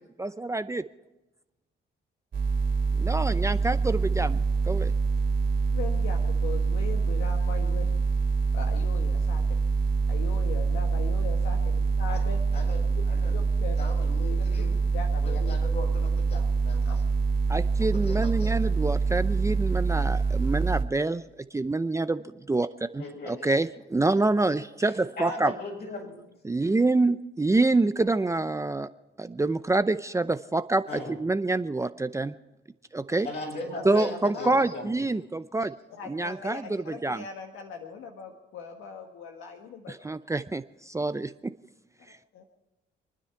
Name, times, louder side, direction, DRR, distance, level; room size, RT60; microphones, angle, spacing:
voice 1, 0.2-0.8 3.0-4.9 17.5-21.2 21.5-25.5 26.4-28.9 29.2-32.3 32.9-33.3 33.8-35.7 36.0-37.2 39.9-41.5, right 2 dB, 15° right, 11 dB, 0.6 m, -27 dB
sound 1, 2.3-20.8, right 4 dB, 60° right, 2.8 m, -25 dB
voice 2, 5.7-8.0 8.5-9.4 10.1-12.4 13.3-13.8 14.6-15.4 16.9-17.0 33.7-34.6 35.9-39.9 42.0-42.4, left 5 dB, 85° left, 3 dB, 1.7 m, -40 dB
voice 3, 12.5-13.4 13.8-14.8 15.2-17.0 18.0-18.6 23.0-23.5 24.8-26.1 30.9-31.2 33.2-35.1, left 2 dB, 55° left, -1 dB, 8.0 m, -38 dB
28.0 x 10.0 x 4.6 m, 1.0 s
cardioid pair, 90°, 20 cm